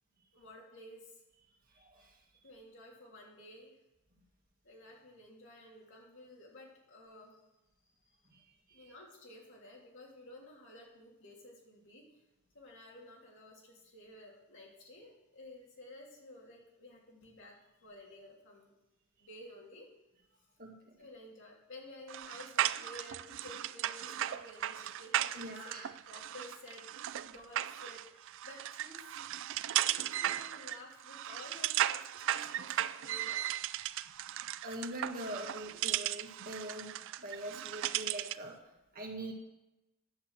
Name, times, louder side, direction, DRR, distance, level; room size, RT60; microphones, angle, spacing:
voice 1, 0.3-1.2 2.4-3.7 4.6-7.4 7.8-7.9 8.7-12.2 12.5-18.7 19.2-19.9 21.0-25.8 26.1-29.1 29.7-33.8, left 1 dB, 60° left, -2 dB, 3.4 m, -53 dB
voice 2, 1.7-2.2 8.3-8.9 20.6-21.1 25.4-25.9 34.6-38.6 38.9-39.3, right 1 dB, 45° right, 0 dB, 2.0 m, -43 dB
sound 1, 22.1-38.5, right 12 dB, 60° right, 0.4 m, -36 dB
10.5 x 6.9 x 7.4 m, 0.96 s
head